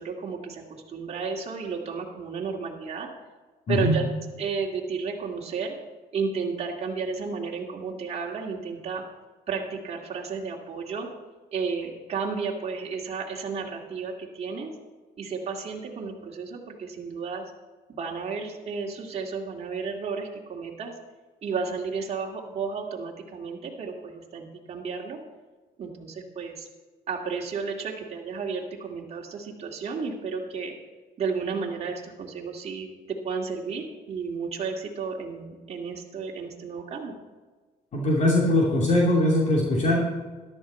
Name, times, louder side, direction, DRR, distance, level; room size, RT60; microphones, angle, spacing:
voice 1, 0.0-3.1 3.7-4.1 4.4-5.8 6.1-9.0 9.5-11.1 11.5-14.7 15.2-17.5 17.9-21.0 21.4-25.2 25.8-26.7 27.1-30.7 31.2-37.1, right 5 dB, 40° right, -2 dB, 2.1 m, -32 dB
voice 2, 3.7-4.0 37.9-40.0, left 1 dB, 45° left, -3 dB, 2.9 m, -21 dB
13.5 x 11.5 x 4.3 m, 1.3 s
cardioid pair, 110°, 17 cm